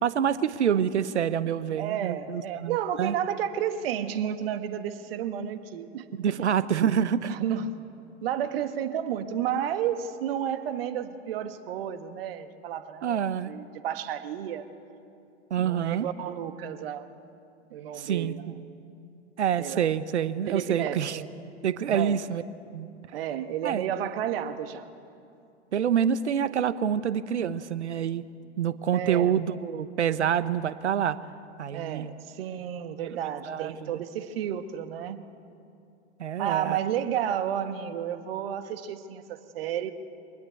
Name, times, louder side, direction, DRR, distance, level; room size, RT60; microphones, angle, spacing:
voice 1, 0.0-3.1 6.1-7.3 13.0-13.5 15.5-16.1 18.0-18.5 19.4-21.2 21.6-22.4 22.7-22.9 23.6-23.8 25.7-28.2 28.6-31.2 31.6-32.1 33.0-33.2 33.5-34.0 36.2-36.8, right 8 dB, 70° right, 15 dB, 1.0 m, -27 dB
voice 2, 1.8-6.3 7.2-7.8 8.2-14.6 15.6-17.1 17.7-18.6 19.6-19.8 20.5-21.3 21.9-22.2 23.1-24.9 28.9-29.3 31.7-35.2 36.4-39.9, right 9 dB, 50° right, 10 dB, 1.5 m, -32 dB
24.5 x 19.0 x 8.5 m, 2.6 s
figure-of-eight pair, 95°, 36 cm